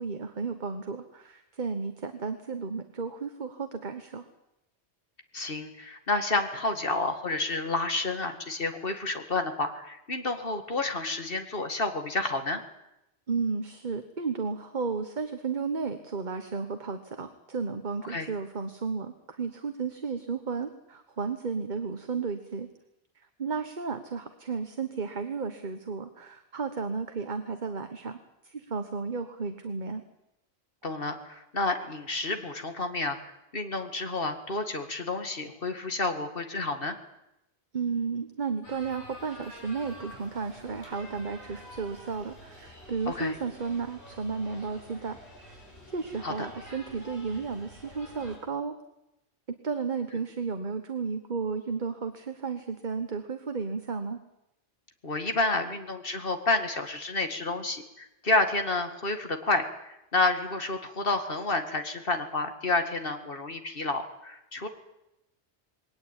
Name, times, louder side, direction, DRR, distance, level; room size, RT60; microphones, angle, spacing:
voice 1, 0.0-4.2 13.3-22.7 23.2-28.2 28.4-30.0 37.7-45.2 45.9-48.7 49.6-54.2, right 5 dB, 45° right, 8 dB, 1.4 m, -33 dB
voice 2, 5.3-12.6 18.1-18.3 30.8-37.0 43.1-43.4 46.2-46.3 55.0-64.7, left 2 dB, 60° left, 6 dB, 2.2 m, -30 dB
sound 1, 38.6-48.4, equal, 80° left, 7.2 m, -48 dB
21.0 x 18.0 x 9.0 m, 0.89 s
omnidirectional pair, 1.1 m